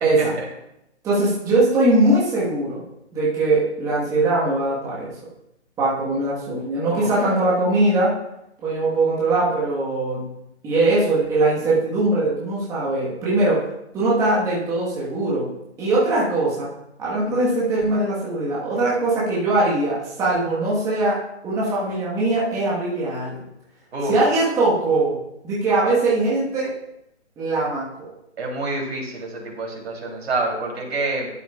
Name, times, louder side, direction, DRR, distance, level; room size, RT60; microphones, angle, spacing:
voice 1, 0.0-0.4 1.0-2.8 3.1-5.1 5.8-8.1 8.6-10.3 10.6-13.7 13.9-15.5 15.8-16.7 17.0-21.2 21.4-23.4 24.1-25.2 25.4-26.7 27.4-28.1, right 2 dB, 10° right, -7 dB, 1.4 m, -21 dB
voice 2, 28.4-31.3, right 2 dB, 65° right, -1 dB, 3.2 m, -27 dB
12.0 x 8.0 x 2.4 m, 0.83 s
hypercardioid pair, 155°, 35 cm